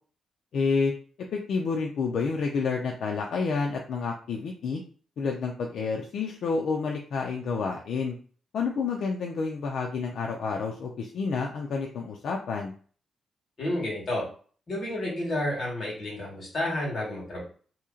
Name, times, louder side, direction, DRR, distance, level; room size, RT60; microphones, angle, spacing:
voice 1, 0.5-0.9 1.3-4.8 5.2-8.1 8.5-12.7, left 4 dB, 60° left, 1 dB, 0.4 m, -29 dB
voice 2, 13.6-14.2 14.7-17.4, left 1 dB, 35° left, -5 dB, 1.6 m, -30 dB
2.9 x 2.8 x 3.7 m, 0.43 s
wide cardioid pair, 170°, 0 cm